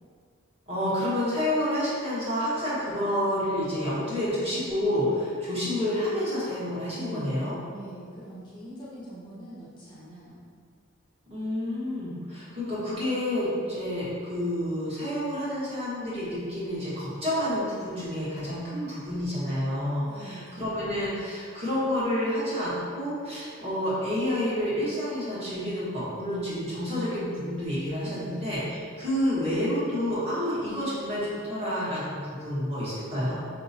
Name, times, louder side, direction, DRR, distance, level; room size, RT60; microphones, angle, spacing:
voice 1, 0.7-7.5 11.3-33.3, left 1 dB, 30° right, -10 dB, 1.2 m, -29 dB
voice 2, 7.0-10.4 20.1-20.7 28.0-28.4, equal, 20° left, -9 dB, 0.7 m, -43 dB
4.8 x 2.9 x 2.7 m, 2.1 s
head